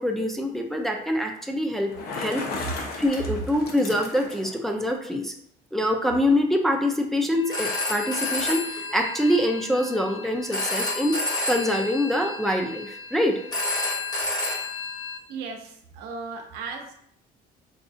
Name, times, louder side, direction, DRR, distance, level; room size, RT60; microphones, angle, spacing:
voice 1, 0.0-5.3 5.7-11.2 11.5-13.4, left 1 dB, ahead, 1 dB, 0.4 m, -25 dB
Bicycle, 1.7-4.6, left 3 dB, 70° left, 0.7 m, -35 dB
Telephone, 7.3-15.2, left 2 dB, 25° left, 1.0 m, -30 dB
voice 2, 15.3-16.9, right 4 dB, 90° right, 2 dB, 0.7 m, -36 dB
4.9 x 2.3 x 2.6 m, 0.68 s
cardioid pair, 110°, 17 cm